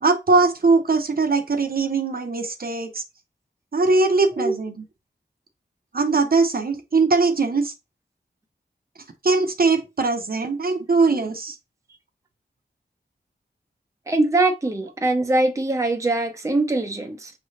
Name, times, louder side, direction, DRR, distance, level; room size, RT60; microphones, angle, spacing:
voice 1, 0.0-3.0 3.7-4.7 5.9-7.7 9.2-11.6, right 3 dB, 55° right, 0.7 m, -20 dB
voice 2, 14.1-17.3, right 2 dB, 15° right, 0.6 m, -22 dB
5.9 x 3.2 x 2.6 m
wide cardioid pair, 80°, 18 cm